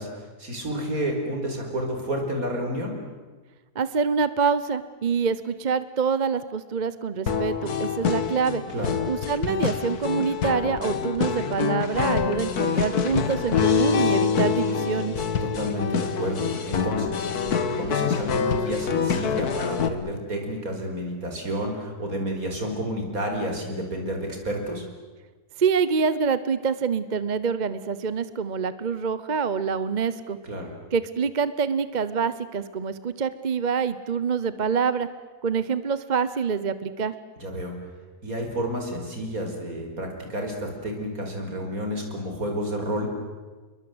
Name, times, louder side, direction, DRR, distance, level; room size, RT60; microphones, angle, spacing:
voice 1, 0.0-3.0 8.7-9.0 15.4-17.3 17.8-24.9 30.4-30.7 37.4-37.8 38.2-43.1, equal, 60° right, 3 dB, 5.3 m, -30 dB
voice 2, 3.7-8.6 9.1-15.2 25.6-30.4 30.9-35.1 35.4-37.1, right 6 dB, 35° right, 14 dB, 0.8 m, -26 dB
sound 1, 7.3-19.9, left 6 dB, 70° left, 1.9 m, -26 dB
29.0 x 22.5 x 8.0 m, 1.3 s
omnidirectional pair, 1.7 m